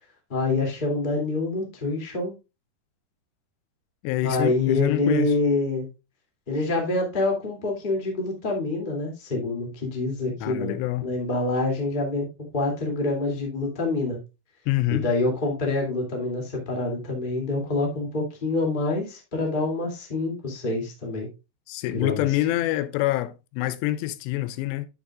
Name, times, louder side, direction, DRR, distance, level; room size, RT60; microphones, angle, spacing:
voice 1, 0.3-2.3 4.2-5.9 6.5-10.7 11.0-12.3 12.5-14.2 14.9-21.3 21.8-22.2, left 2 dB, 20° left, 1.5 m, -26 dB
voice 2, 4.0-5.3 10.4-11.1 14.7-15.1 21.7-24.9, left 15 dB, 90° left, 2.8 m, -26 dB
8.9 x 8.5 x 2.4 m
omnidirectional pair, 4.9 m